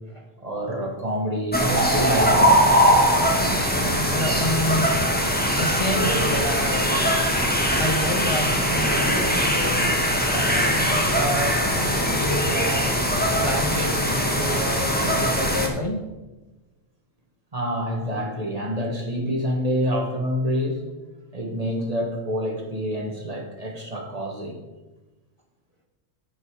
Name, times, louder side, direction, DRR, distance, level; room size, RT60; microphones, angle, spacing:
voice 1, 0.4-3.1 17.5-20.9 21.3-24.5, equal, 35° right, 1 dB, 1.8 m, -27 dB
sound 1, 1.5-15.7, equal, 10° left, 1.4 m, -21 dB
voice 2, 3.5-5.1 5.4-7.0 7.8-9.8 10.3-12.9 13.4-16.0, equal, 30° left, 1 dB, 0.9 m, -29 dB
14.0 x 5.4 x 4.9 m, 1.1 s
omnidirectional pair, 1.1 m